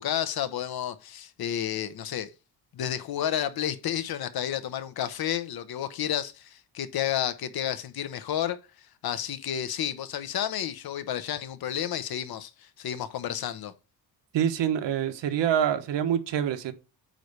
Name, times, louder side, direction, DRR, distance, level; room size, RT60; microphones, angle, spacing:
voice 1, 0.0-2.3 2.7-13.7, left 10 dB, 60° left, 0.9 m, -31 dB
voice 2, 14.3-16.7, right 9 dB, 80° right, 1.2 m, -26 dB
9.2 x 3.2 x 6.7 m
wide cardioid pair, 165°, 42 cm